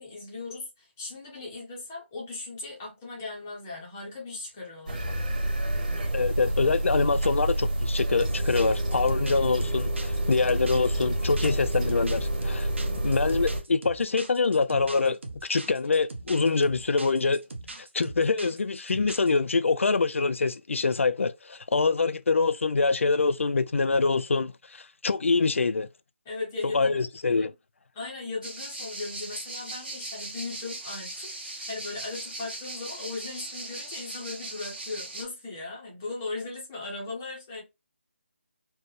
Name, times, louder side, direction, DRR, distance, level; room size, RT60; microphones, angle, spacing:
voice 1, 0.0-5.3 12.8-13.1 26.3-27.0 27.3-27.5 28.0-37.6, left 3 dB, 5° left, 0.5 m, -38 dB
sound 1, 4.9-13.6, right 1 dB, 35° right, 1.4 m, -28 dB
voice 2, 6.1-12.7 13.0-17.4 17.8-25.9 26.6-27.5, left 4 dB, 85° left, 0.4 m, -25 dB
sound 2, 8.2-19.4, right 2 dB, 70° right, 0.9 m, -41 dB
sound 3, 28.4-35.2, right 2 dB, 50° right, 1.8 m, -39 dB
4.5 x 2.1 x 3.1 m
figure-of-eight pair, 180°, 7 cm